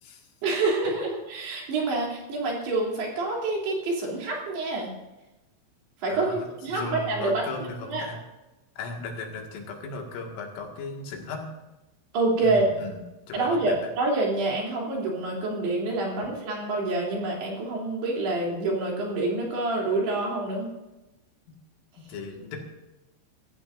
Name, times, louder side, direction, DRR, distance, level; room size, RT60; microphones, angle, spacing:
voice 1, 0.4-4.9 6.0-7.4 7.9-8.0 12.1-12.7 13.3-20.7, right 2 dB, 55° right, -2 dB, 5.1 m, -27 dB
voice 2, 6.1-8.2 8.8-11.5 12.4-13.0 13.3-13.8 22.0-22.6, left 3 dB, 75° left, 1 dB, 4.6 m, -36 dB
24.0 x 14.5 x 2.7 m, 1.0 s
omnidirectional pair, 5.9 m